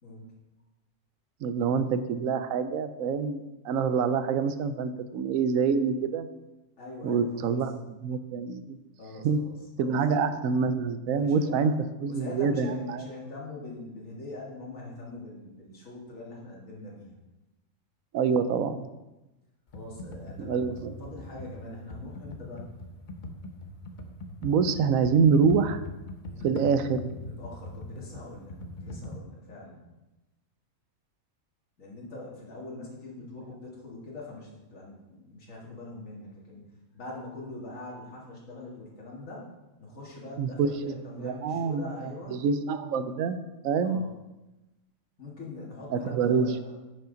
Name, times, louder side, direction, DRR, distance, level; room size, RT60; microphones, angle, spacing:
voice 1, 0.0-0.3 6.8-7.6 9.0-10.0 11.1-11.7 12.1-17.2 19.7-22.7 26.3-26.5 27.2-29.8 31.8-36.6 36.9-39.5 39.8-42.4 43.8-44.1 45.2-46.8, left 2 dB, 75° left, -4 dB, 2.2 m, -43 dB
voice 2, 1.4-6.3 7.0-7.8 8.0-8.8 9.2-9.4 9.8-11.7 12.0-13.0 18.1-18.9 20.4-21.0 24.4-25.8 26.4-27.1 40.4-44.0 45.9-46.5, right 5 dB, 80° right, 11 dB, 1.0 m, -26 dB
Computer keyboard, 19.7-29.2, left 1 dB, 45° left, 0.8 m, -42 dB
10.0 x 5.6 x 3.9 m, 1.0 s
omnidirectional pair, 1.4 m